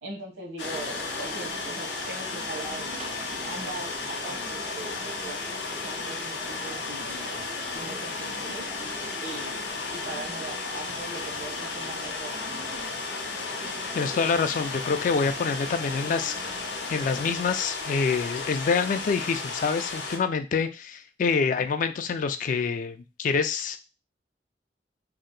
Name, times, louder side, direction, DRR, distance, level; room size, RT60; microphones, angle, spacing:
voice 1, 0.0-2.9 3.5-7.5 7.7-9.6 9.9-12.4, right 2 dB, 80° right, 0 dB, 1.0 m, -41 dB
sound 1, 0.6-20.2, left 4 dB, 85° left, 0.6 m, -34 dB
sound 2, 0.6-17.4, right 3 dB, 35° right, 0.3 m, -44 dB
voice 2, 13.9-23.8, left 5 dB, 50° left, 8 dB, 0.3 m, -26 dB
2.7 x 2.1 x 3.8 m, 0.29 s
head